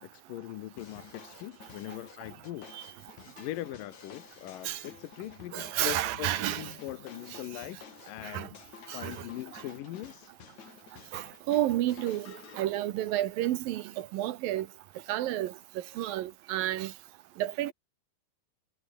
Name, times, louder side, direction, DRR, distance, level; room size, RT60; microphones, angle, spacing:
voice 1, 0.0-2.9 3.4-7.8 8.1-8.6 8.9-10.3, left 14 dB, 70° left, 2.3 m, -41 dB
sound 1, 0.8-12.6, left 8 dB, 50° left, 3.2 m, -51 dB
voice 2, 5.5-6.7 8.2-8.5 8.9-9.3 9.5-9.6 11.1-14.7 15.1-16.9 17.4-17.7, right 14 dB, 70° right, 2.5 m, -31 dB
omnidirectional pair, 4.7 m